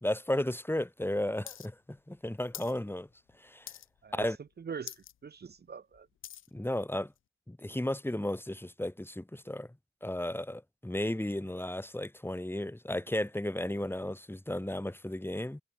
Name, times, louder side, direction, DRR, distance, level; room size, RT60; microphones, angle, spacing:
voice 1, 0.0-3.1 3.4-3.7 4.1-4.4 6.5-7.1 7.5-9.7 10.0-15.6, left 1 dB, 10° left, 3.1 m, -34 dB
sound 1, 1.5-1.7 1.9-2.8 3.1-3.3 3.7-4.1 4.5-4.6 4.8-5.1 5.6-6.5 7.2-7.3, left 11 dB, 85° left, 1.1 m, -45 dB
voice 2, 4.0-6.1, right 6 dB, 55° right, 1.1 m, -43 dB
supercardioid pair, 45°, 20 cm